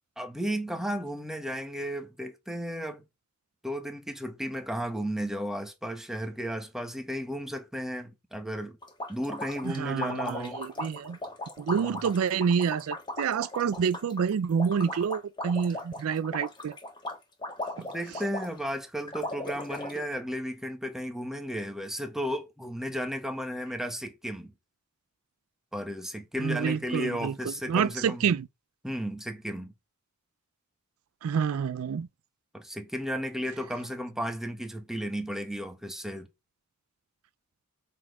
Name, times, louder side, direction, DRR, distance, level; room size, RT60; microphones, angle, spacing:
voice 1, 0.2-3.0 3.6-8.8 9.1-10.6 11.7-12.0 17.8-24.5 25.7-28.3 28.8-29.7 32.5-36.3, equal, ahead, 1.2 m, -34 dB
sound 1, 8.8-18.7 19.1-20.0, left 1 dB, 20° left, 1.6 m, -37 dB
voice 2, 9.6-11.2 11.6-16.8 26.4-28.5 31.2-32.1, right 6 dB, 75° right, 0.4 m, -28 dB
7.4 x 4.1 x 4.8 m
head